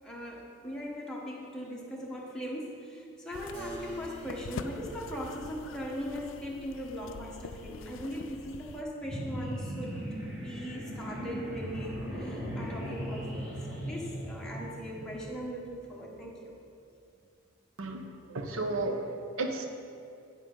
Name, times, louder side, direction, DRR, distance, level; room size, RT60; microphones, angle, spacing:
voice 1, 0.0-16.5, equal, 5° left, -4 dB, 1.0 m, -40 dB
sound 1, 3.3-8.8, left 4 dB, 65° left, 0.4 m, -44 dB
Keyboard (musical), 3.5-9.1, equal, 45° right, 2.2 m, -49 dB
sound 2, 9.0-15.2, equal, 15° right, 1.4 m, -38 dB
voice 2, 18.3-19.7, right 2 dB, 80° right, 5 dB, 0.8 m, -33 dB
8.8 x 7.3 x 3.8 m, 2.5 s
head